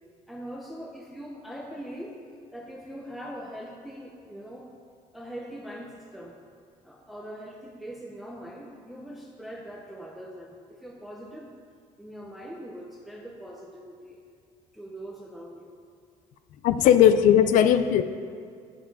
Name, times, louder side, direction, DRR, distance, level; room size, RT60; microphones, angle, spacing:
voice 1, 0.3-2.2 2.5-4.7 5.1-6.4 6.8-11.6 12.0-14.2 14.7-15.7, equal, ahead, -1 dB, 0.7 m, -41 dB
voice 2, 16.6-18.0, left 9 dB, 65° left, 10 dB, 0.4 m, -18 dB
7.4 x 7.1 x 4.8 m, 2.2 s
cardioid pair, 125°, 14 cm